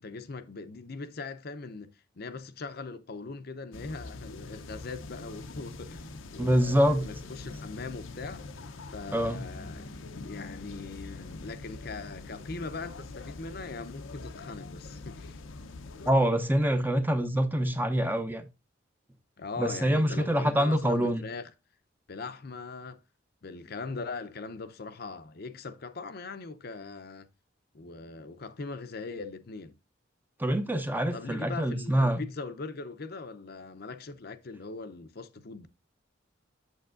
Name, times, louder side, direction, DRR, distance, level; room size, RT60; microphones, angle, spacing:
voice 1, 0.0-8.5 8.9-9.9 10.2-15.4 19.4-21.5 22.1-23.0 23.4-27.3 27.7-29.8 31.1-35.7, left 4 dB, 55° left, 0.6 m, -40 dB
sound 1, 3.7-16.1, left 3 dB, 85° left, 0.7 m, -43 dB
voice 2, 6.4-7.1 9.1-9.4 16.1-18.5 19.6-21.2 30.4-32.2, equal, 10° right, 0.6 m, -25 dB
8.3 x 7.1 x 2.5 m
head